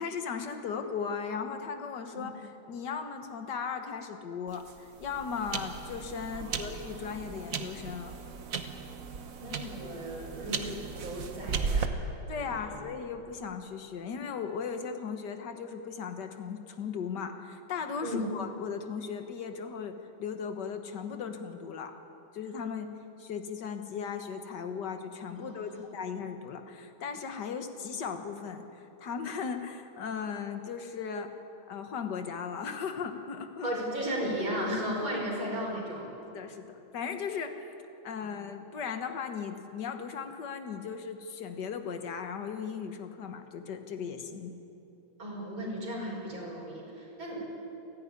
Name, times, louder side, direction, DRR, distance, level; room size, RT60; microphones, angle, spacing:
voice 1, 0.0-8.2 12.3-22.0 22.3-22.9 23.2-31.4 31.7-33.7 35.1-35.2 36.3-37.6 38.0-44.5, left 6 dB, 60° left, 6 dB, 1.9 m, -37 dB
sound 1, 4.5-11.9, right 5 dB, 50° right, 1.3 m, -36 dB
voice 2, 6.3-6.7 9.4-10.7 11.0-11.9 12.5-12.8 18.0-18.3 25.4-25.8 33.6-36.1 38.2-38.4 45.2-47.4, equal, 85° right, -4 dB, 5.8 m, -35 dB
29.5 x 10.5 x 9.8 m, 2.9 s
omnidirectional pair, 2.2 m